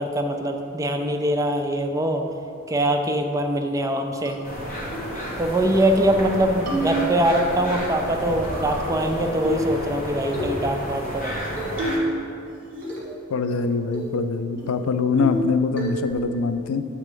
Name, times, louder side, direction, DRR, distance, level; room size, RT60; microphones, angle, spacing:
voice 1, 0.0-2.2 2.7-4.4 5.4-11.3, right 1 dB, 15° right, 4 dB, 0.4 m, -23 dB
sound 1, 4.3-4.4 4.9-5.1 5.5-5.6 5.9-6.3 6.7-7.4 8.4-9.1 9.4-9.7 10.3-10.5 11.6-12.2 12.5-13.2 13.5-13.6 13.9-14.2 14.6-14.7 15.2-15.5 15.8-16.2, right 2 dB, 40° right, 1.5 m, -29 dB
sound 2, 4.4-12.0, equal, 35° left, 1.2 m, -31 dB
voice 2, 13.3-16.9, left 4 dB, 85° left, 10 dB, 0.4 m, -23 dB
7.4 x 3.6 x 5.0 m, 2.6 s
head